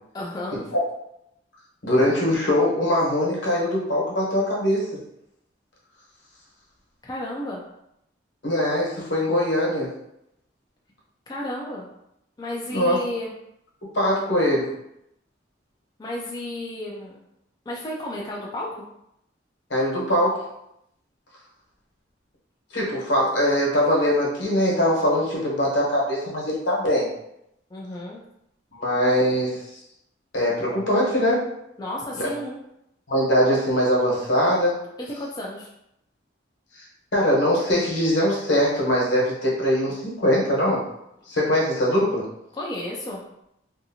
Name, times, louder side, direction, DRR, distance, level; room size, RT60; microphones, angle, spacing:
voice 1, 0.1-0.7 7.0-7.6 11.3-11.9 12.4-13.3 16.0-17.2 17.7-18.8 27.7-28.2 31.8-32.6 35.2-35.7 42.5-43.2, left 1 dB, 20° left, -3 dB, 0.3 m, -32 dB
voice 2, 1.8-5.0 8.4-9.9 12.7-13.0 13.9-14.7 19.7-20.4 22.7-27.1 28.7-29.6 30.3-31.5 32.1-32.2 33.1-34.8 37.1-40.8 41.3-42.3, equal, 75° left, -4 dB, 1.0 m, -22 dB
2.7 x 2.5 x 2.7 m, 0.79 s
head